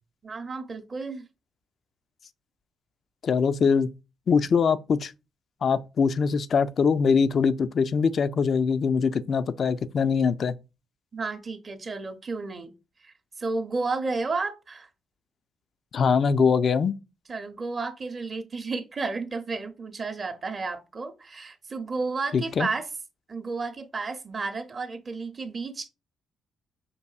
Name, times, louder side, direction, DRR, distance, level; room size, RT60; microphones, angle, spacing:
voice 1, 0.2-1.3 11.1-12.7 13.0-14.9 17.3-22.9 23.3-25.9, right 3 dB, 45° right, 0.6 m, -32 dB
voice 2, 3.2-3.9 4.3-5.1 5.6-10.6 15.9-16.9 22.3-22.7, left 5 dB, 55° left, 0.3 m, -23 dB
5.3 x 2.6 x 2.3 m
hypercardioid pair, 50°, 0 cm